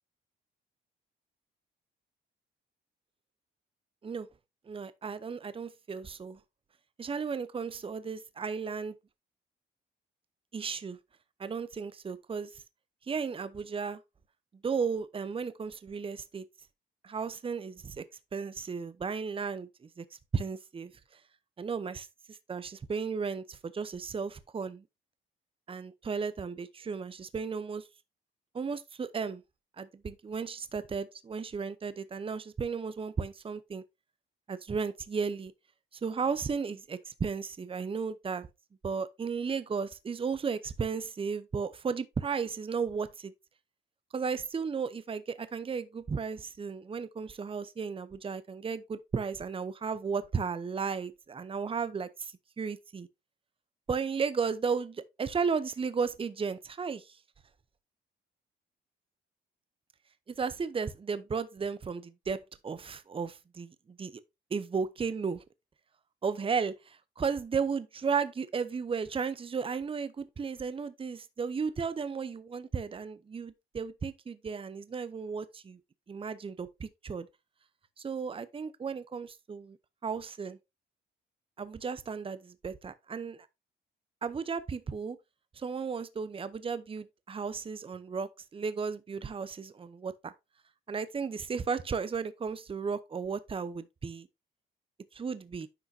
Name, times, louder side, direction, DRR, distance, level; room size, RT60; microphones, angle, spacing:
voice 1, 4.7-6.4 7.0-9.0 10.5-11.0 11.4-12.6 13.1-14.0 14.6-16.4 17.0-18.0 18.3-20.0 20.3-20.9 21.6-24.8 25.7-27.8 28.5-29.4 29.8-33.8 34.5-35.5 36.0-38.5 38.8-43.3 44.1-53.1 53.9-57.2 60.3-64.2 64.5-65.4 66.2-75.8 76.1-77.3 78.0-79.8 80.0-80.6 81.6-83.5 84.2-85.2 85.5-90.3 90.9-94.3 95.1-95.7, right 5 dB, 25° right, 0.7 m, -34 dB
10.0 x 5.6 x 2.7 m
cardioid pair, 90°, 20 cm